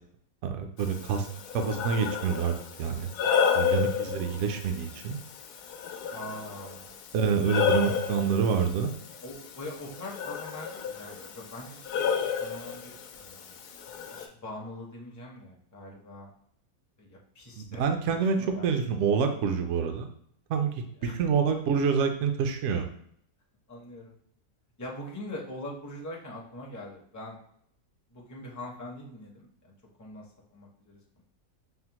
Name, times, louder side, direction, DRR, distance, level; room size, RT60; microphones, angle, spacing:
voice 1, 0.4-1.3 1.5-2.5 2.8-3.1 3.5-5.2 7.1-8.9 17.6-20.1 20.5-22.8, right 6 dB, 65° right, 5 dB, 0.7 m, -27 dB
Breathing, 0.8-14.3, left 7 dB, 90° left, 1.1 m, -32 dB
voice 2, 3.7-4.2 6.1-6.9 9.2-13.6 14.1-16.3 17.0-18.7 21.0-21.2 23.7-24.2 24.8-27.4 28.1-29.7 30.0-31.2, left 1 dB, 20° left, -2 dB, 0.4 m, -43 dB
5.6 x 2.1 x 2.9 m, 0.67 s
omnidirectional pair, 1.6 m